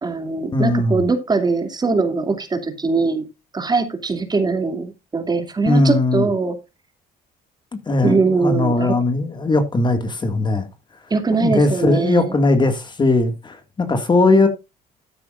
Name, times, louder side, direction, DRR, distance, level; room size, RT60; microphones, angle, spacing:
voice 1, 0.0-3.2 3.5-6.6 8.0-9.0 11.1-12.3, right 4 dB, 25° right, 2.6 m, -21 dB
voice 2, 0.5-1.0 5.7-6.3 7.9-10.7 11.4-14.5, left 2 dB, 25° left, 2.0 m, -18 dB
13.0 x 9.4 x 2.5 m
cardioid pair, 110°, 17 cm